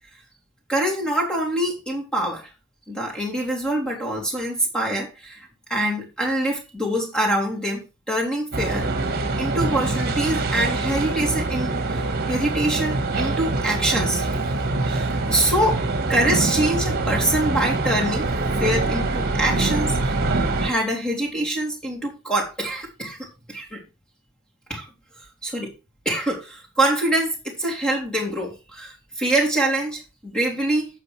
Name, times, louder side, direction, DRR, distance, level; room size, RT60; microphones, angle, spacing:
voice 1, 0.7-2.5 2.9-8.9 9.4-14.3 14.8-15.8 16.1-18.3 18.6-20.2 20.6-23.2 23.5-23.8 24.7-24.9 25.4-25.7 26.1-30.9, right 1 dB, 5° left, 3.5 m, -25 dB
sound 1, 8.5-20.7, right 2 dB, 45° right, 1.6 m, -24 dB
9.3 x 6.8 x 4.7 m
head